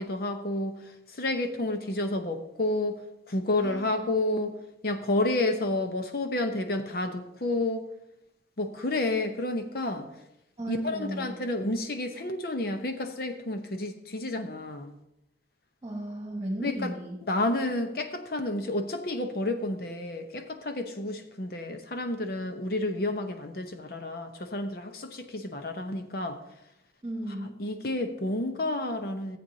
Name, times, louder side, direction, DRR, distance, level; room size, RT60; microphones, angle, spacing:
voice 1, 0.0-3.0 3.3-4.6 4.8-7.9 8.6-10.1 10.7-15.0 16.6-16.9 17.3-26.4 27.6-29.4, left 2 dB, 55° left, 6 dB, 0.8 m, -30 dB
voice 2, 3.6-4.0 10.6-11.4 15.8-17.2 27.0-27.6, right 1 dB, 20° right, 0 dB, 1.5 m, -35 dB
15.5 x 7.8 x 2.8 m, 0.83 s
head